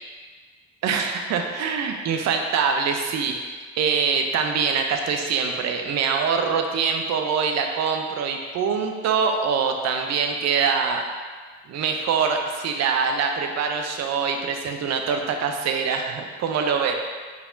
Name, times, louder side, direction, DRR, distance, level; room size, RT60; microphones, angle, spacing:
voice 1, 0.8-3.5 3.8-11.0 11.7-16.9, right 5 dB, 55° right, 4 dB, 0.6 m, -24 dB
4.8 x 3.4 x 2.6 m, 1.5 s
hypercardioid pair, 50°, 33 cm